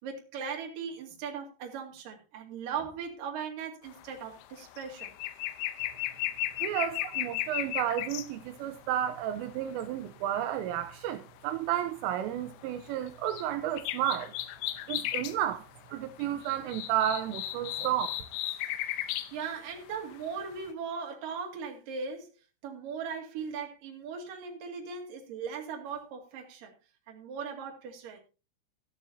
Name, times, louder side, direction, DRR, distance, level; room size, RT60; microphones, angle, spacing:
voice 1, 0.0-5.1 7.0-7.1 18.7-22.3 22.6-26.7 27.1-28.2, right 6 dB, 50° right, 3.4 m, -39 dB
sound 1, 3.9-4.1 4.4-8.3 9.1-9.8 11.8-12.0 12.4-13.5 13.8-15.4 15.8-15.9 16.1-19.3 19.8-20.4 20.7-20.8, left 14 dB, 80° left, 3.0 m, -35 dB
voice 2, 6.6-14.3 14.9-15.6 15.9-18.2, right 11 dB, 85° right, 3.3 m, -32 dB
14.5 x 13.0 x 2.8 m
omnidirectional pair, 5.8 m